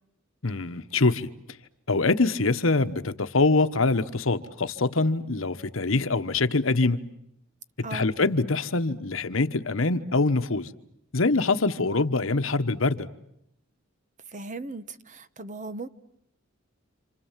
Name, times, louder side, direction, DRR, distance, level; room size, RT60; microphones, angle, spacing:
voice 1, 0.4-1.3 1.9-7.1 7.8-10.7 11.1-13.1, left 3 dB, 75° left, 1.2 m, -24 dB
voice 2, 14.3-15.9, right 3 dB, 40° right, 1.1 m, -37 dB
29.5 x 27.0 x 7.4 m
head